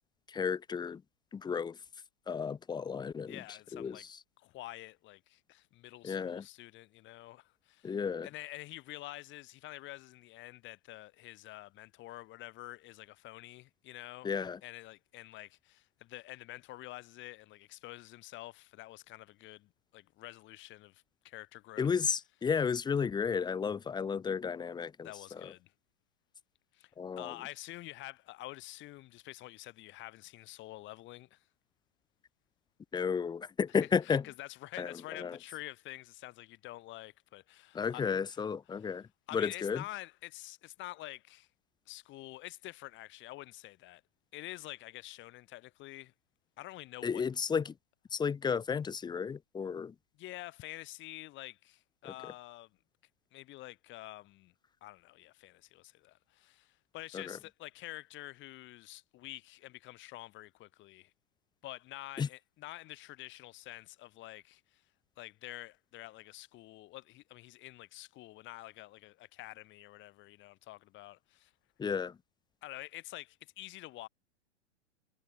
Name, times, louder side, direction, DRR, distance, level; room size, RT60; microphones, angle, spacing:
voice 1, 0.3-1.0 1.3-1.8 2.3-3.4 3.7-4.1 6.0-6.5 7.8-8.3 14.2-14.6 21.8-25.5 27.0-27.3 32.9-34.2 34.8-35.4 37.7-39.8 47.0-47.7 48.1-49.9 52.2-52.3 57.1-57.4 62.2-62.3 71.8-72.1, left 6 dB, 10° left, 1.2 m, -33 dB
voice 2, 3.3-4.1 4.4-14.3 14.6-21.9 25.0-25.7 26.7-31.4 34.0-38.5 38.8-39.0 39.3-41.5 41.9-44.0 44.3-46.1 46.6-47.2 50.1-52.7 53.3-54.5 54.8-61.1 61.6-64.6 65.2-71.5 72.6-74.1, left 17 dB, 30° left, 4.9 m, -48 dB
hypercardioid pair, 115°, 35 cm